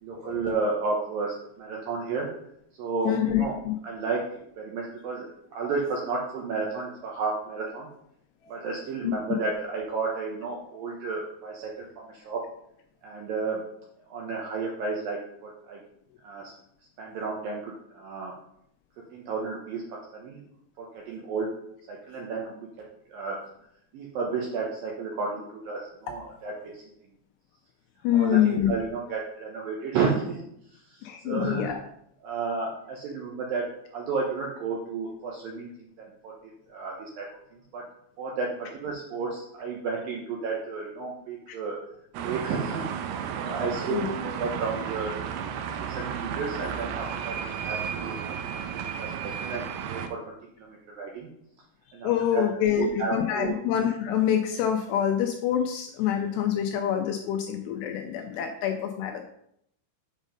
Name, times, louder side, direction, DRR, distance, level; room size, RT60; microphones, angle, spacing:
voice 1, 0.0-2.3 2.8-3.5 3.8-4.3 4.6-7.9 8.5-12.4 13.0-13.6 14.1-15.8 16.2-16.5 17.0-18.3 19.1-20.4 20.8-21.5 21.9-22.7 23.1-23.4 23.9-26.8 28.1-30.4 30.7-31.7 32.2-33.7 33.9-37.3 37.7-37.8 38.2-41.8 42.2-42.9 43.3-44.1 44.4-45.1 45.5-45.6 45.9-48.4 48.7-51.3 51.9-52.4 52.8-53.5, right 4 dB, 75° right, -2 dB, 2.1 m, -32 dB
voice 2, 3.1-3.7 9.0-9.1 28.0-28.7 31.0-31.8 43.9-44.1 48.9-49.1 52.0-59.2, left 10 dB, 80° left, 4 dB, 2.5 m, -26 dB
sound 1, 42.1-50.1, right 8 dB, 90° right, 2.4 m, -33 dB
7.3 x 5.2 x 5.2 m, 0.74 s
omnidirectional pair, 5.3 m